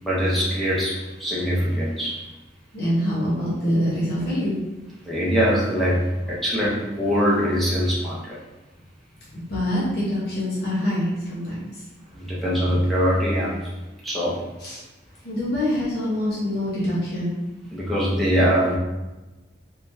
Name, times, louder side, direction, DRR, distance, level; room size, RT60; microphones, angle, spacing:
voice 1, 0.0-2.2 5.0-8.4 12.1-13.7 14.0-14.4 17.7-18.8, equal, ahead, -8 dB, 0.8 m, -23 dB
voice 2, 2.7-4.6 9.3-11.8 14.6-14.8 15.2-17.3, equal, 60° left, -8 dB, 1.2 m, -25 dB
4.2 x 3.3 x 2.7 m, 1.1 s
head